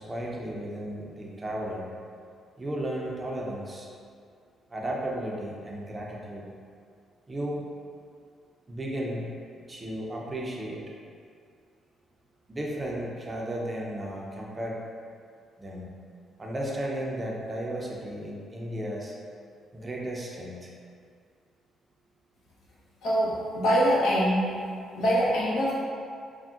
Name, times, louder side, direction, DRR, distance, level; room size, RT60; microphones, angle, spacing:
voice 1, 0.0-1.9 2.6-3.9 4.7-6.4 7.3-7.6 8.7-9.3 9.7-10.8 12.5-14.8 15.6-15.9 16.4-19.1 19.7-20.7, right 1 dB, 25° right, -3 dB, 0.5 m, -34 dB
voice 2, 23.0-24.4 24.9-25.7, equal, 85° left, -7 dB, 0.7 m, -23 dB
3.6 x 2.1 x 2.3 m, 2.2 s
cardioid pair, 90°, 0 cm